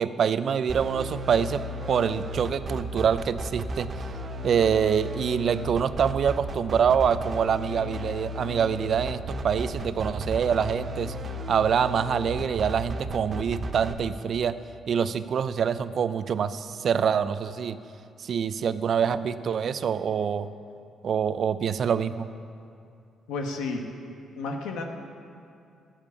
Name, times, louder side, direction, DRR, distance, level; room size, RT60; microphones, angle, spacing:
voice 1, 0.0-3.9 4.4-11.1 11.5-14.5 14.9-17.8 18.2-20.5 21.0-22.3, right 7 dB, 55° right, 13 dB, 0.5 m, -25 dB
sound 1, 0.7-13.9, equal, 40° right, 0.8 m, -34 dB
voice 2, 23.3-23.9 24.4-24.8, left 3 dB, 90° left, 3 dB, 1.2 m, -31 dB
12.0 x 7.3 x 8.3 m, 2.5 s
cardioid pair, 90°, 0 cm